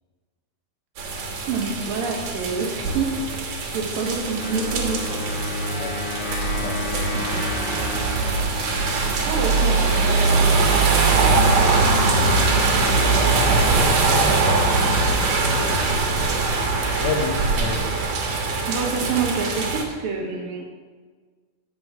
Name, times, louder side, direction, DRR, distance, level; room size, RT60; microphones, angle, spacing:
sound 1, 1.0-19.8, right 3 dB, 60° right, 2.3 m, -21 dB
voice 1, 1.5-3.1 3.4-5.2 6.6-7.4 7.7-7.9 9.2-13.9 14.3-14.7 18.7-20.6, right 4 dB, 85° right, 0 dB, 3.3 m, -29 dB
Wind instrument woodwind instrument, 4.4-10.0, left 7 dB, 90° left, 2.8 m, -33 dB
voice 2, 6.5-7.1 8.3-9.2 15.3-15.6 17.0-17.8, left 5 dB, 70° left, 4 dB, 1.6 m, -31 dB
9.6 x 7.1 x 5.8 m, 1.4 s
omnidirectional pair, 4.0 m